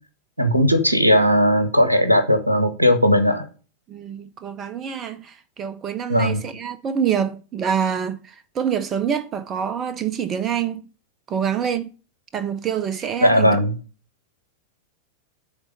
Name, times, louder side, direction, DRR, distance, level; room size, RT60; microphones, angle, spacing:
voice 1, 0.4-3.5 6.1-6.4 13.2-13.7, equal, 85° right, 1.0 m, -17 dB
voice 2, 3.9-10.8 11.3-11.9 12.3-13.6, right 8 dB, 30° right, 0.5 m, -26 dB
9.9 x 3.7 x 5.1 m
figure-of-eight pair, 90°, 0 cm